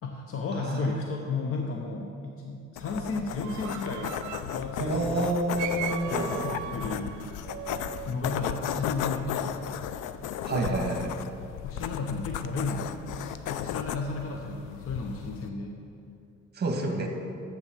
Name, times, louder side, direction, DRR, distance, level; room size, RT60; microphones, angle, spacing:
voice 1, 0.0-5.4 6.1-7.2 8.1-9.8 11.6-15.8 16.8-17.1, left 3 dB, 50° left, 1 dB, 0.9 m, -34 dB
voice 2, 0.6-0.9 4.8-6.5 10.4-11.1 16.6-17.1, right 2 dB, 35° right, 2 dB, 1.4 m, -28 dB
sound 1, 2.8-15.5, left 10 dB, 90° left, 0.5 m, -35 dB
sound 2, 3.4-4.6 5.6-8.6, right 12 dB, 80° right, 0.5 m, -39 dB
8.1 x 7.0 x 5.9 m, 2.6 s
cardioid pair, 90°, 30 cm